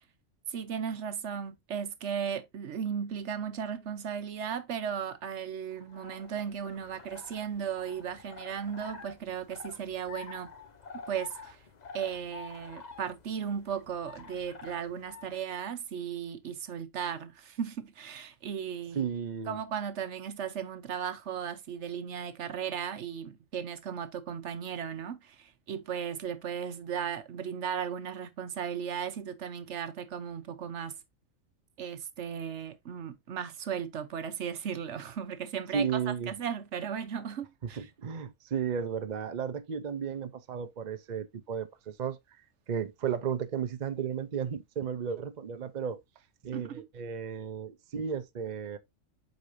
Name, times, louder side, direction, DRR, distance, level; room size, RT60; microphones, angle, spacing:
voice 1, 0.5-10.5 11.1-11.6 11.9-19.0 19.5-30.9 31.8-35.9 36.3-37.9 46.5-46.8, right 8 dB, 65° right, 1.1 m, -36 dB
sound 1, 5.7-15.5, left 5 dB, 40° left, 0.8 m, -48 dB
voice 2, 18.9-19.6 35.7-36.3 37.6-42.2 42.7-46.0 46.4-48.8, right 7 dB, 45° right, 0.7 m, -34 dB
8.0 x 5.2 x 2.6 m
omnidirectional pair, 1.4 m